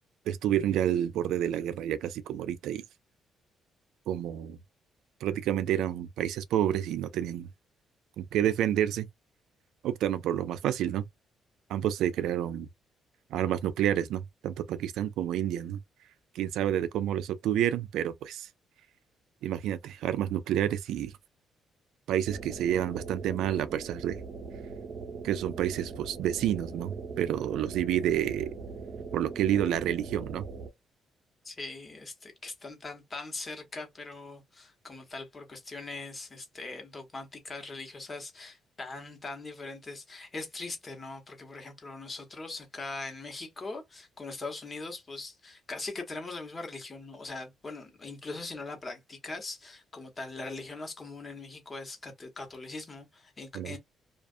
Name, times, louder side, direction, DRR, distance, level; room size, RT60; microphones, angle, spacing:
voice 1, 0.3-2.8 4.1-4.6 5.2-7.5 8.2-9.1 9.8-11.1 11.7-12.7 13.3-15.8 16.3-18.5 19.4-21.1 22.1-24.2 25.2-28.5 29.1-30.5 53.5-53.8, right 11 dB, 85° right, 0.3 m, -29 dB
sound 1, 22.3-30.7, right 4 dB, 45° right, 0.7 m, -41 dB
voice 2, 31.4-53.8, left 3 dB, 30° left, 1.1 m, -41 dB
2.4 x 2.3 x 2.5 m
cardioid pair, 90°, 0 cm